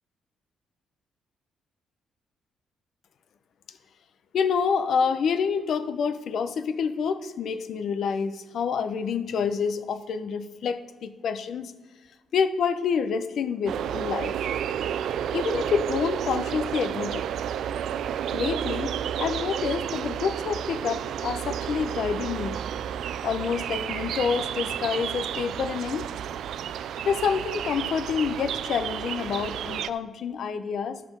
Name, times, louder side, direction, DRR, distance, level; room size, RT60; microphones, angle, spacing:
voice 1, 4.3-11.7 12.3-14.3 15.3-17.2 18.3-22.6 23.2-26.1 27.1-31.0, left 6 dB, 65° left, 10 dB, 0.6 m, -28 dB
sound 1, 13.7-29.9, right 9 dB, 75° right, 0.3 m, -31 dB
12.5 x 5.0 x 5.7 m, 1.3 s
cardioid pair, 90°, 0 cm